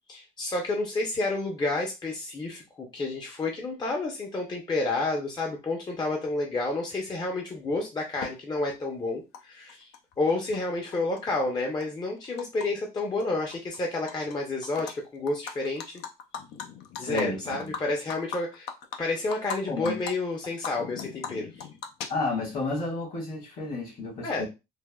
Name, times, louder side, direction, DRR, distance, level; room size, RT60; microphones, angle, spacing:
voice 1, 0.1-9.9 10.2-16.0 17.0-18.7 19.0-21.7 24.2-24.5, left 2 dB, 25° left, 0.6 m, -30 dB
Animal, 8.2-8.3 9.3-9.4 9.7-10.6 10.9-12.7 13.0-13.2 13.5-14.3 14.6-14.9 15.3-19.6 19.8-20.1 20.4-22.5, left 7 dB, 80° left, 0.5 m, -38 dB
voice 2, 17.0-17.7 19.7-20.0 22.1-24.5, left 3 dB, 55° left, 1.4 m, -31 dB
3.3 x 2.1 x 2.2 m
cardioid pair, 110°, 17 cm